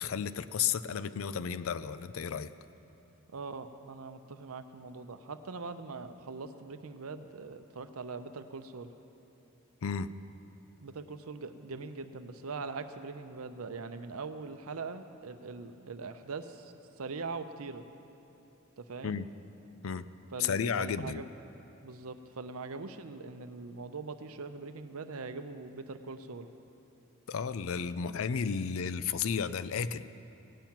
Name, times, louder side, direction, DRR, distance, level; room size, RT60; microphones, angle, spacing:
voice 1, 0.0-2.5 9.8-10.1 19.0-19.2 19.8-20.1 20.4-21.2 27.3-30.1, left 6 dB, 70° left, 14 dB, 0.4 m, -33 dB
voice 2, 3.3-8.9 10.8-17.9 18.8-19.2 20.3-21.3 21.8-26.5, right 4 dB, 75° right, 9 dB, 0.7 m, -42 dB
17.0 x 9.0 x 5.9 m, 2.9 s
head